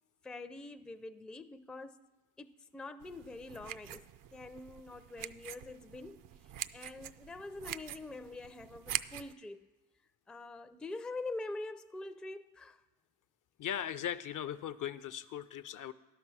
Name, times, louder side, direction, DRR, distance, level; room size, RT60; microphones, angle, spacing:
voice 1, 0.2-2.0 2.4-4.0 4.3-6.2 6.7-9.6 10.3-12.8, left 2 dB, ahead, 10 dB, 0.4 m, -45 dB
sound 1, 3.0-9.3, right 11 dB, 55° right, 0.5 m, -44 dB
voice 2, 13.6-15.9, left 10 dB, 50° left, 14 dB, 0.5 m, -38 dB
12.0 x 5.7 x 6.1 m, 1.1 s
supercardioid pair, 60°, 40 cm